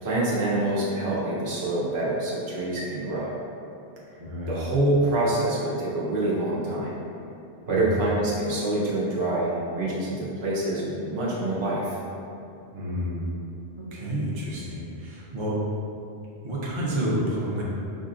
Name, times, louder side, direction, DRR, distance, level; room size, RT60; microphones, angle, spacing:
voice 1, 0.0-3.4 4.5-6.9 7.7-12.0, right 2 dB, 70° right, -6 dB, 1.0 m, -26 dB
voice 2, 4.2-4.7 7.7-8.0 12.7-13.3 13.8-15.6 16.4-17.6, equal, 35° right, -6 dB, 0.5 m, -29 dB
4.7 x 2.5 x 2.5 m, 2.7 s
omnidirectional pair, 1.1 m